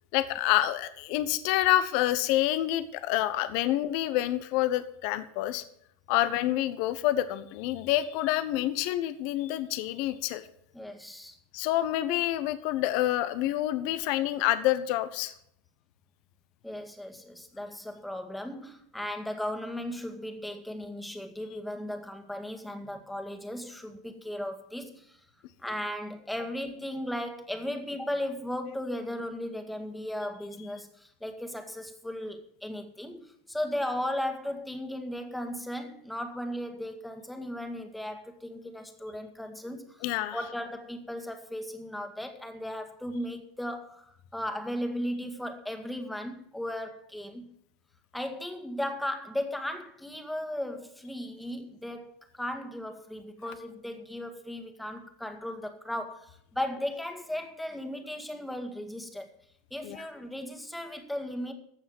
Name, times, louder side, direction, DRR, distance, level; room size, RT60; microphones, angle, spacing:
voice 1, 0.1-5.6 6.1-10.4 11.5-15.3 40.0-40.4 59.8-60.0, left 14 dB, 60° left, 12 dB, 1.0 m, -27 dB
voice 2, 10.7-11.4 16.6-25.2 25.6-40.0 40.3-47.5 48.1-59.3 59.7-61.5, left 1 dB, 5° left, 6 dB, 1.9 m, -36 dB
15.5 x 5.7 x 7.8 m, 0.69 s
hypercardioid pair, 105°, 0 cm